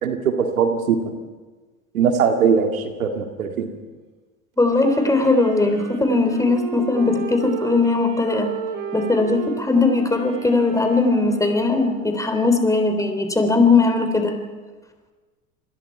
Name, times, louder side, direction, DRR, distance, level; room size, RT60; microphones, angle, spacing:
voice 1, 0.0-1.0 1.9-3.7, right 6 dB, 85° right, 4 dB, 2.2 m, -20 dB
voice 2, 4.6-8.5 8.9-14.3, left 3 dB, 10° left, 5 dB, 3.8 m, -19 dB
Wind instrument woodwind instrument, 4.7-12.3, right 7 dB, 65° right, 3.8 m, -33 dB
28.0 x 20.5 x 4.7 m, 1.3 s
hypercardioid pair, 80°, 41 cm